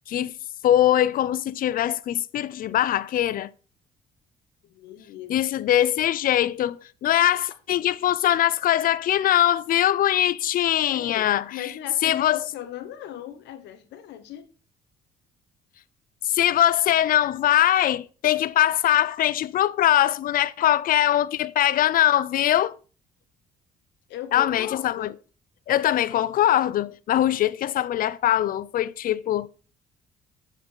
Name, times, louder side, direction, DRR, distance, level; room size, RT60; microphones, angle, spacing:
voice 1, 0.6-3.5 5.3-11.7 12.0-12.5 16.2-22.8 24.3-25.1 25.7-29.5, left 12 dB, 55° left, 0.4 m, -22 dB
voice 2, 4.6-5.5 10.9-14.5 24.1-25.1, left 11 dB, 75° left, 0.9 m, -38 dB
7.6 x 4.6 x 3.8 m
supercardioid pair, 80°, 18 cm